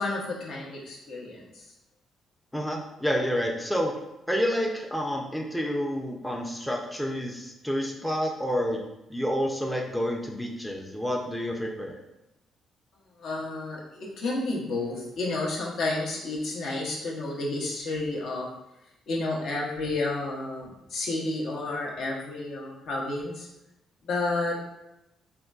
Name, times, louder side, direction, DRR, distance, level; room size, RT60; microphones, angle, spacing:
voice 1, 0.0-1.6 13.2-18.5 19.1-23.5 24.0-24.5, left 2 dB, 70° left, -3 dB, 0.7 m, -31 dB
voice 2, 2.5-3.9 4.3-8.8 9.1-12.0, equal, 5° left, 0 dB, 0.4 m, -29 dB
3.7 x 2.2 x 2.3 m, 0.90 s
cardioid pair, 90°, 0 cm